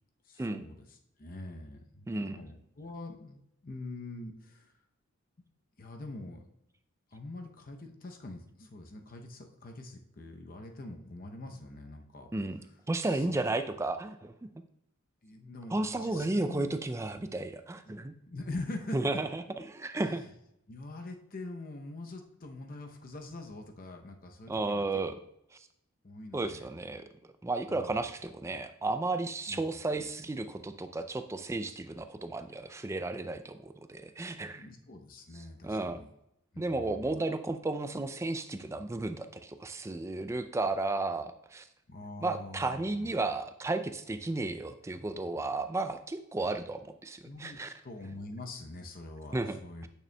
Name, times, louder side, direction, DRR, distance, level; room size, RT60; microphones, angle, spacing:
voice 1, 0.2-0.8 1.2-4.7 5.8-6.4 7.1-12.3 13.1-13.4 15.2-16.7 17.9-19.2 20.1-20.3 20.7-25.0 26.0-26.7 27.7-28.1 29.5-29.6 29.9-30.1 34.3-36.1 36.5-37.1 41.9-43.1 47.2-49.8, left 2 dB, 40° left, 4 dB, 0.7 m, -44 dB
voice 2, 2.1-2.4 12.3-12.6 12.9-14.3 15.7-18.1 18.9-19.4 19.7-20.2 24.5-25.1 25.5-25.7 26.3-27.0 27.4-34.7 35.3-36.0 36.6-41.7 42.2-47.7 49.3-49.9, right 2 dB, 15° right, 9 dB, 0.3 m, -33 dB
8.8 x 6.7 x 2.2 m, 0.79 s
head